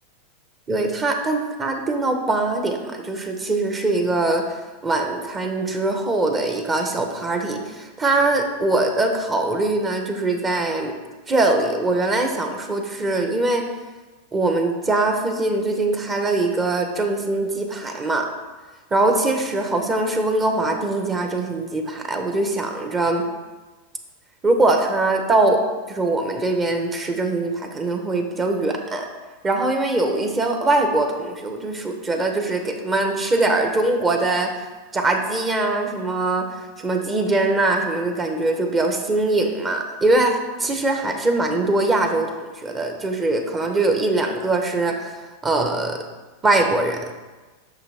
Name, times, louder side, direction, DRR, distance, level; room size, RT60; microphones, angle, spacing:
voice 1, 0.7-10.9 11.3-13.6 14.3-18.3 18.9-23.2 24.4-25.6 25.9-29.1 29.4-34.5 34.9-36.4 36.8-46.0 46.4-47.0, right 2 dB, 20° right, 4 dB, 0.9 m, -22 dB
6.0 x 5.8 x 3.5 m, 1.3 s
hypercardioid pair, 110°, 0 cm